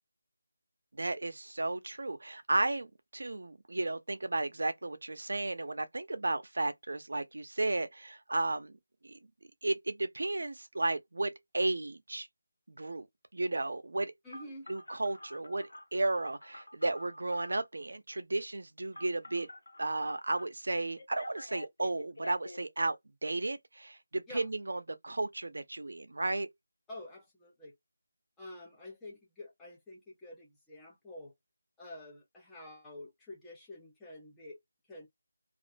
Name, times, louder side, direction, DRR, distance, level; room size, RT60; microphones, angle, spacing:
voice 1, 1.0-8.7 9.0-9.2 9.6-12.3 12.7-13.1 13.3-14.1 14.7-19.5 19.8-26.5, right 2 dB, 70° right, 0.5 m, -34 dB
voice 2, 14.2-14.7 24.3-24.5 26.9-27.8 28.4-31.3 31.8-34.6 34.9-35.1, left 1 dB, 5° left, 0.6 m, -48 dB
Telephone, 14.3-17.7 18.9-20.5 21.0-22.6, left 1 dB, 85° left, 1.0 m, -48 dB
2.4 x 2.2 x 2.5 m
figure-of-eight pair, 175°, 0 cm